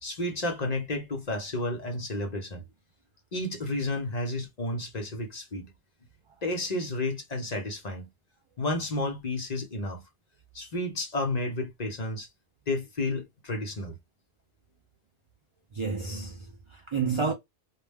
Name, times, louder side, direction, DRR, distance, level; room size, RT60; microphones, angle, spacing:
voice 1, 0.0-2.7 3.3-5.7 6.4-8.1 8.6-10.0 10.5-12.3 12.7-14.0, left 2 dB, 45° left, 0.7 m, -31 dB
voice 2, 15.7-17.3, right 5 dB, 55° right, 0.3 m, -30 dB
2.3 x 2.1 x 3.3 m
omnidirectional pair, 1.1 m